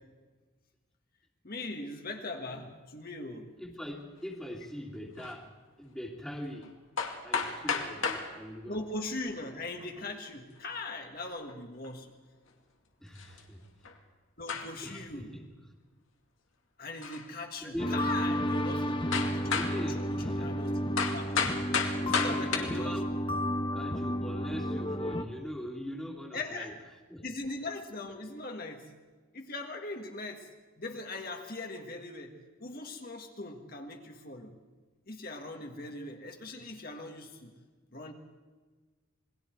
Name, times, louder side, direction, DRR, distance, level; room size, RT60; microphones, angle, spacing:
voice 1, 1.4-3.5 4.6-4.7 8.7-12.1 14.4-15.3 16.8-19.5 20.4-21.5 22.0-23.0 26.3-26.8 27.2-28.9 29.3-32.3 32.6-34.5 35.1-37.5 37.9-38.1, left 2 dB, 45° left, 3 dB, 1.9 m, -40 dB
voice 2, 3.6-6.7 7.2-8.8 13.0-13.7 14.8-15.5 17.6-18.4 19.5-20.6 22.2-23.1 23.7-26.7 27.1-27.3, equal, ahead, 0 dB, 2.3 m, -41 dB
sound 1, 5.2-5.3 6.6-6.7 7.0-8.3 9.6-10.1 11.5-11.6 11.8-11.9 13.2-13.4 13.8-14.0 14.5-14.9 17.0-17.3 17.9-18.0 19.1-19.8 21.0-22.6, left 5 dB, 75° left, 2.5 m, -32 dB
sound 2, 17.8-25.2, equal, 25° left, 1.0 m, -32 dB
28.0 x 21.0 x 4.6 m, 1.3 s
head